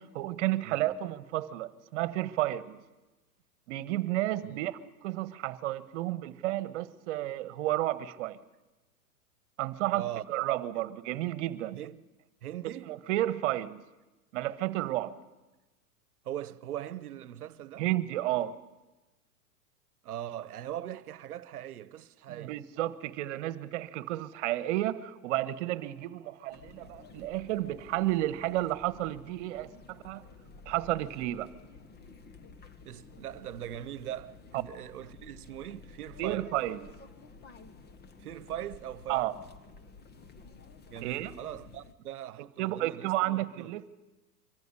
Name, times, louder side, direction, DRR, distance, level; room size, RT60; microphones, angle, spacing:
voice 1, 0.0-2.8 3.7-4.7 5.0-8.4 9.6-11.8 12.9-13.8 14.3-15.1 17.8-18.6 22.3-30.2 30.6-31.5 36.2-36.8 39.1-39.3 41.0-41.3 42.6-44.0, right 15 dB, 50° right, 1.4 m, -32 dB
voice 2, 9.9-10.3 11.7-12.0 12.4-13.0 16.2-17.9 20.0-22.6 32.8-36.5 38.2-39.3 40.9-43.7, right 11 dB, 70° right, 1.1 m, -40 dB
sound 1, 26.5-41.9, left 4 dB, 20° left, 1.3 m, -52 dB
24.0 x 15.0 x 9.9 m
hypercardioid pair, 120°, 45 cm